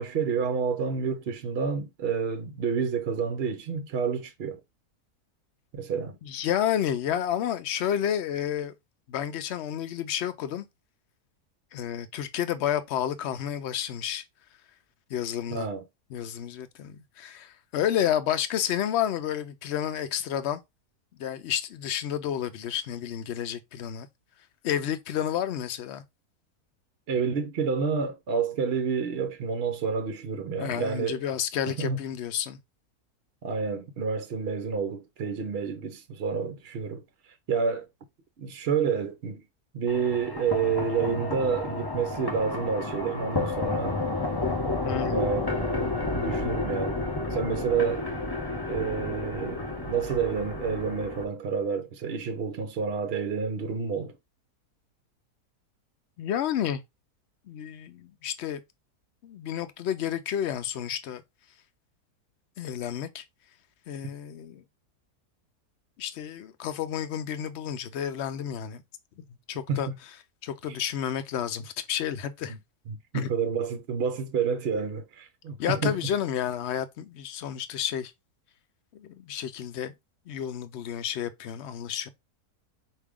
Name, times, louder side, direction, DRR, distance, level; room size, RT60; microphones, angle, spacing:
voice 1, 0.0-4.6 5.7-6.2 15.5-15.8 27.1-31.2 31.6-32.0 33.4-37.0 37.5-37.9 38.4-39.4 39.7-44.0 45.1-47.0 47.3-48.0 48.7-54.1 69.7-69.9 70.7-70.8 72.5-72.6 72.9-76.0, right 6 dB, 55° right, 0.7 m, -29 dB
voice 2, 6.2-8.7 9.1-10.6 11.7-14.2 15.1-15.7 16.1-20.6 21.2-24.1 24.6-26.0 30.6-32.6 44.8-45.3 56.2-56.8 57.5-58.6 59.2-61.2 62.6-63.2 63.9-64.6 66.0-68.8 69.5-69.9 70.4-72.5 73.1-73.3 75.6-78.1 78.9-79.9 80.3-82.1, left 10 dB, 65° left, 0.6 m, -30 dB
sound 1, 39.9-51.2, left 2 dB, 25° left, 0.5 m, -31 dB
4.8 x 2.7 x 3.5 m
omnidirectional pair, 1.6 m